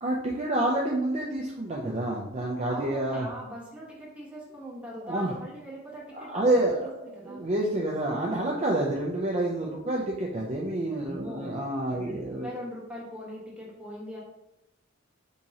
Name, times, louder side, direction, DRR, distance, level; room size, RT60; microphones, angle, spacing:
voice 1, 0.0-3.3 5.0-5.3 6.2-12.5, right 1 dB, 35° right, -2 dB, 0.5 m, -28 dB
voice 2, 2.7-7.4 11.0-11.6 11.9-14.2, equal, 5° right, -5 dB, 1.1 m, -41 dB
3.6 x 2.9 x 4.1 m, 0.91 s
head